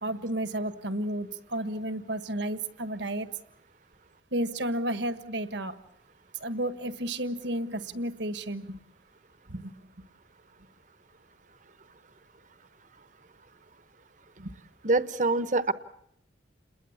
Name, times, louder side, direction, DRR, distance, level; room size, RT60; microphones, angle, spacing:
voice 1, 0.0-3.3 4.3-5.7 6.4-8.8 9.5-9.7 14.4-14.5, right 1 dB, 65° right, 11 dB, 1.4 m, -32 dB
voice 2, 14.8-15.7, right 3 dB, 40° right, 13 dB, 1.0 m, -25 dB
28.5 x 21.5 x 7.2 m, 0.73 s
head